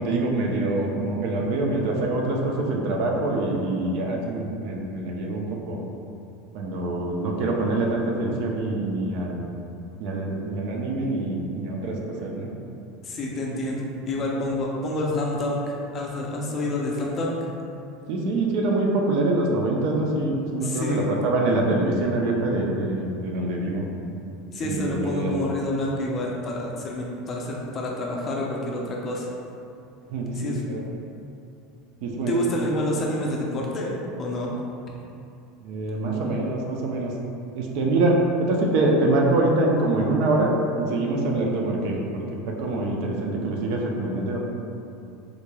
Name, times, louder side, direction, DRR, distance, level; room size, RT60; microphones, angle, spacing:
voice 1, 0.0-5.8 6.5-9.4 10.0-11.9 12.2-12.5 18.1-23.8 24.6-25.3 30.1-30.8 32.0-32.4 35.6-37.1 37.5-42.0 42.6-44.4, right 2 dB, 55° right, 0 dB, 0.4 m, -25 dB
voice 2, 13.0-17.5 20.6-21.1 24.5-29.3 30.3-30.7 32.3-33.9 34.2-34.5, left 1 dB, 25° left, -2 dB, 0.4 m, -28 dB
3.6 x 3.1 x 2.2 m, 2.6 s
supercardioid pair, 160°, 0 cm